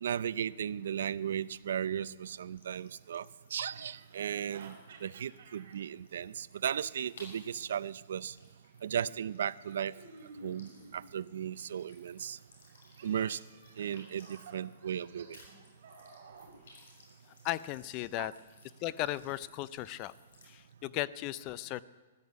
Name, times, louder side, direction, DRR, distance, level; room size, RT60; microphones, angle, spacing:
voice 1, 0.0-3.3 3.5-8.4 8.8-9.9 10.4-12.4 13.0-13.4 13.8-15.4 18.2-18.3, right 9 dB, 75° right, 18 dB, 0.5 m, -36 dB
sound 1, 0.8-15.0 15.3-20.5, left 2 dB, 80° left, 6.5 m, -61 dB
sound 2, 2.2-2.3 3.6-5.8 7.0-8.2 9.6-11.2 12.9-16.6, right 3 dB, 55° right, 4.4 m, -54 dB
voice 2, 17.4-18.3 18.8-20.1 20.5-21.8, left 15 dB, 30° left, 18 dB, 0.4 m, -36 dB
15.0 x 11.5 x 8.1 m, 1.3 s
hypercardioid pair, 160°, 0 cm